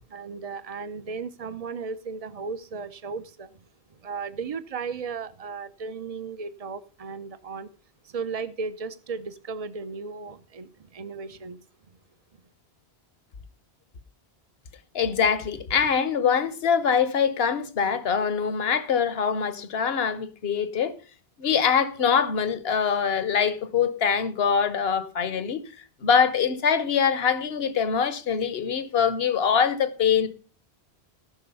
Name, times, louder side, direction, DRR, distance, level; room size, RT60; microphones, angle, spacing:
voice 1, 0.0-3.5 3.9-7.7 8.0-11.6, right 5 dB, 40° right, 0.8 m, -35 dB
voice 2, 14.9-20.9 21.4-25.6 26.0-30.3, left 7 dB, 70° left, 1.1 m, -23 dB
14.5 x 6.1 x 5.5 m
omnidirectional pair, 1.1 m